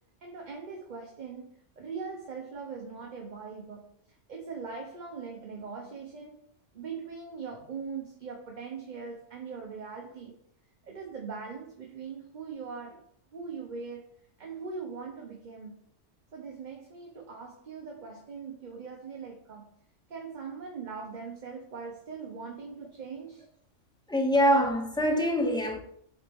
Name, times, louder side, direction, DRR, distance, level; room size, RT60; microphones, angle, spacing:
voice 1, 0.2-1.5 1.8-3.9 4.3-6.4 6.7-10.3 10.8-13.0 13.3-14.0 14.4-15.7 16.3-19.7 20.1-23.5, right 5 dB, 40° right, 0.9 m, -41 dB
voice 2, 24.1-25.8, equal, 5° left, 0.7 m, -24 dB
7.1 x 4.1 x 3.6 m
omnidirectional pair, 1.3 m